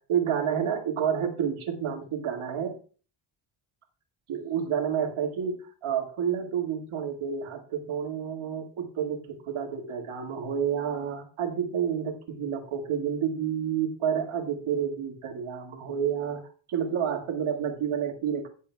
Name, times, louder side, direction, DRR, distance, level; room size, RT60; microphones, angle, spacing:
voice 1, 0.1-2.8 4.3-16.4 16.7-18.5, right 8 dB, 80° right, 3 dB, 2.1 m, -29 dB
16.0 x 7.4 x 2.3 m, 0.38 s
cardioid pair, 90°, 48 cm